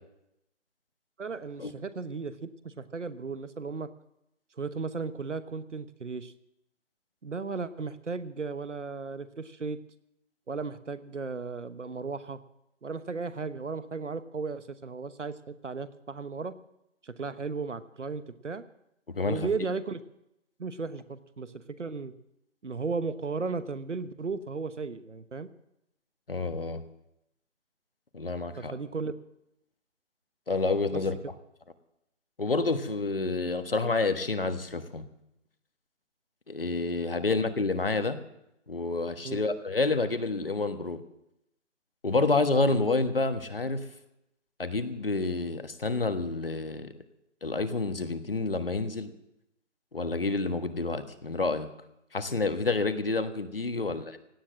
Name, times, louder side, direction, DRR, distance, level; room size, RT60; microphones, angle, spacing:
voice 1, 1.2-3.9 4.6-6.3 7.2-9.8 10.5-12.4 12.8-16.6 17.0-18.6 19.2-20.0 20.6-22.1 22.6-25.5 28.6-29.1 30.9-31.0 39.2-39.4 53.9-54.0, right 4 dB, 70° right, 13 dB, 1.2 m, -35 dB
voice 2, 19.1-19.4 26.3-26.8 28.1-28.7 30.5-31.1 32.4-35.1 36.5-38.2 38.7-41.0 42.0-43.8 44.6-46.9 47.4-49.1 49.9-51.7 52.1-54.2, left 3 dB, 50° left, 10 dB, 1.4 m, -28 dB
17.0 x 10.0 x 7.5 m, 0.84 s
figure-of-eight pair, 180°, 37 cm